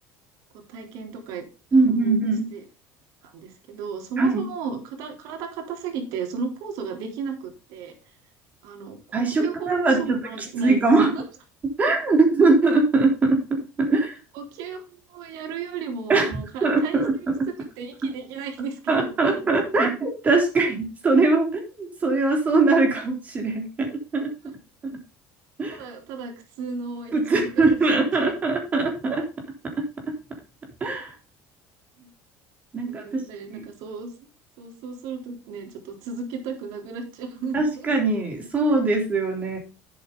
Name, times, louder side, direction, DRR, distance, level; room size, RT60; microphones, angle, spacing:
voice 1, 0.7-1.5 1.7-2.1 2.5-2.7 3.2-7.9 8.6-9.0 9.3-10.9 11.2-11.3 14.3-14.8 15.1-17.0 17.8-19.4 24.5-24.6 25.7-27.5 28.3-28.4 32.0-32.1 32.8-34.1 34.6-37.9, right 5 dB, 70° right, 3 dB, 3.7 m, -34 dB
voice 2, 1.7-2.5 4.2-4.5 9.1-10.2 10.6-11.1 11.8-14.2 16.1-17.5 18.9-24.3 25.6-25.8 27.1-29.3 29.6-30.2 30.8-31.1 32.7-33.2 33.5-33.7 37.5-39.6, right 3 dB, 25° right, 2 dB, 3.5 m, -21 dB
10.5 x 7.8 x 3.9 m, 0.32 s
cardioid pair, 145°, 6 cm